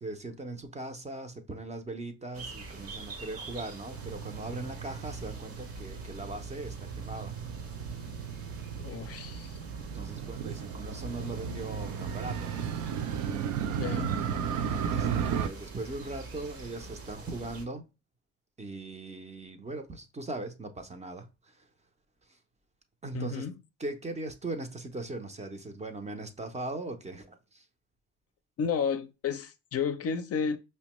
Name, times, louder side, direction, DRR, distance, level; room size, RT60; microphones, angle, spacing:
voice 1, 0.0-7.4 9.9-12.7 14.9-17.8 18.6-21.7 22.3-22.4 23.0-23.5 23.8-27.6, right 2 dB, 20° right, 0.5 m, -39 dB
sound 1, 2.3-17.7, right 3 dB, 50° right, 0.8 m, -44 dB
Motorcycle, 3.9-15.5, right 7 dB, 85° right, 0.5 m, -35 dB
voice 2, 8.8-9.6 13.8-14.1 23.1-23.5 28.6-30.6, left 6 dB, 50° left, 0.5 m, -32 dB
5.1 x 2.2 x 3.0 m
cardioid pair, 90°, 30 cm